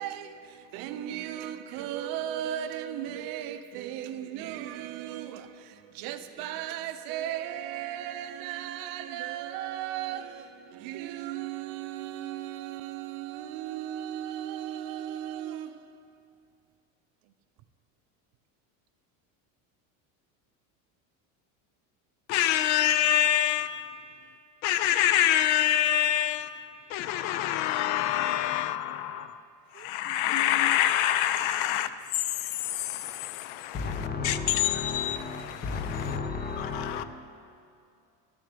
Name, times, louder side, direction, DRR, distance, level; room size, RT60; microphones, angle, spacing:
voice 1, 0.0-16.3 22.6-22.8 29.7-30.7, right 11 dB, 60° right, 0.5 m, -36 dB
voice 2, 22.3-24.0 24.6-29.4 29.7-36.1 36.6-37.0, left 12 dB, 75° left, 0.5 m, -27 dB
voice 3, 33.7-37.0, left 4 dB, 25° left, 0.6 m, -33 dB
11.5 x 6.5 x 3.4 m
cardioid pair, 135°, 40 cm